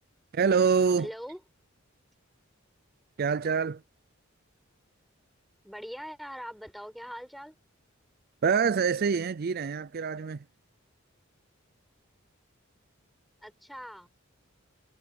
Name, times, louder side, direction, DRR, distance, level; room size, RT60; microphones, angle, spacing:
voice 1, 0.3-1.1 3.2-3.8 8.4-10.4, right 6 dB, 50° right, 0.4 m, -25 dB
voice 2, 1.0-1.4 5.6-7.6 13.4-14.1, equal, ahead, 6.0 m, -42 dB
head